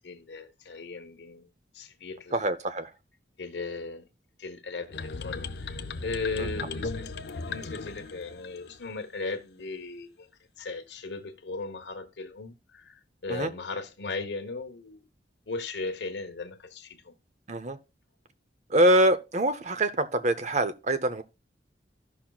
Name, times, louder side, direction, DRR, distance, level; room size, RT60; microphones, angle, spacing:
voice 1, 0.0-2.4 3.4-4.1 4.4-7.1 7.5-10.3 10.6-15.0 15.5-17.1, left 3 dB, 85° left, 1.1 m, -37 dB
voice 2, 2.3-2.9 6.4-6.5 13.3-13.5 17.5-17.8 18.7-21.2, right 1 dB, 40° right, 0.7 m, -24 dB
sound 1, 4.9-8.9, left 4 dB, 65° left, 0.6 m, -36 dB
14.5 x 5.9 x 2.3 m
head